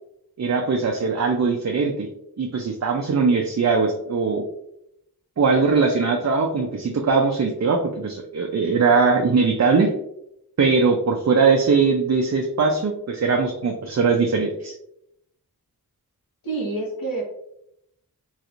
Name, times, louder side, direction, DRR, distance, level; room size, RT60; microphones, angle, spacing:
voice 1, 0.4-2.1 2.4-4.4 5.4-9.9 10.6-14.7, right 4 dB, 50° right, 2 dB, 0.4 m, -20 dB
voice 2, 16.4-17.2, right 3 dB, 65° left, -3 dB, 1.3 m, -27 dB
3.1 x 2.9 x 2.5 m, 0.78 s
wide cardioid pair, 45°, 37 cm